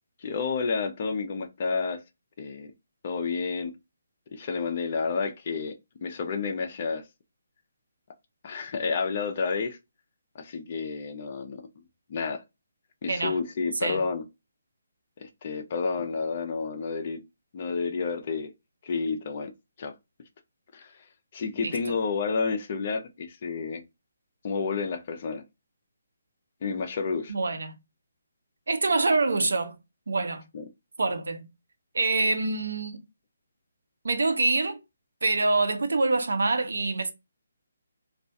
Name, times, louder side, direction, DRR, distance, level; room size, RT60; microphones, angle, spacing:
voice 1, 0.2-2.0 2.4-2.7 3.0-3.7 4.3-5.7 6.0-7.0 8.4-9.8 10.3-11.6 12.1-12.4 13.0-14.2 15.2-17.2 17.5-18.5 18.8-19.5 19.8-19.9 20.7-20.9 21.3-23.8 24.4-25.4 26.6-27.3 30.5-30.6, left 5 dB, 35° left, 0.4 m, -30 dB
voice 2, 13.1-13.4 13.8-14.0 21.6-21.7 27.3-27.7 28.7-29.8 30.1-30.4 31.0-31.5 31.9-33.0 34.0-34.8 35.2-37.1, right 3 dB, 85° right, 0.5 m, -25 dB
2.3 x 2.1 x 2.6 m
hypercardioid pair, 170°, 0 cm